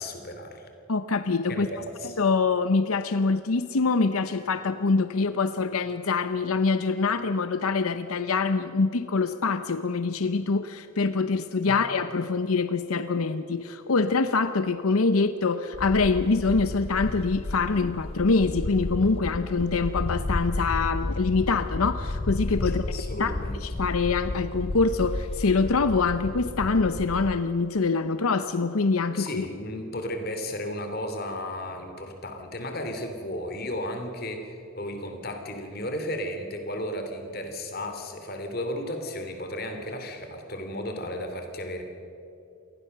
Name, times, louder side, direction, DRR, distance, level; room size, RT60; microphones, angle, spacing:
voice 1, 0.0-0.7 1.5-2.2 22.6-23.6 29.1-41.8, left 1 dB, 45° left, 5 dB, 3.0 m, -34 dB
voice 2, 0.9-1.7 2.2-22.9 23.2-23.3 23.6-29.4, left 4 dB, 90° left, 11 dB, 0.8 m, -25 dB
sound 1, 15.7-27.4, left 2 dB, 25° left, 0.5 m, -32 dB
27.5 x 19.5 x 6.7 m, 3.0 s
head